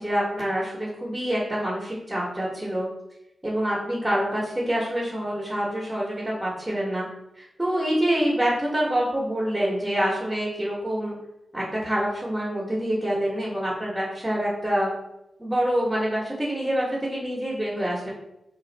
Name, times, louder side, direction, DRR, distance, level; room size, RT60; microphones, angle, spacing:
voice 1, 0.0-2.9 3.4-7.0 7.4-11.1 11.5-14.9 15.4-18.1, equal, 15° right, -5 dB, 1.0 m, -26 dB
2.5 x 2.4 x 4.0 m, 0.89 s
cardioid pair, 50°, 0 cm